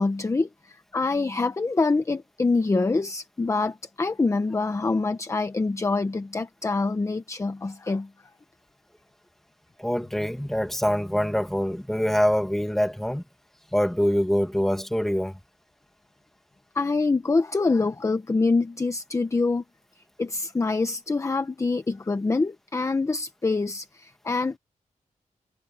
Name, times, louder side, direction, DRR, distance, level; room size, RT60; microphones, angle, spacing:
voice 1, 0.0-8.1 16.7-19.6 20.2-24.6, left 3 dB, 20° left, 0.8 m, -25 dB
voice 2, 9.8-13.2 13.7-15.4, equal, ahead, 1.8 m, -24 dB
wide cardioid pair, 175°, 14 cm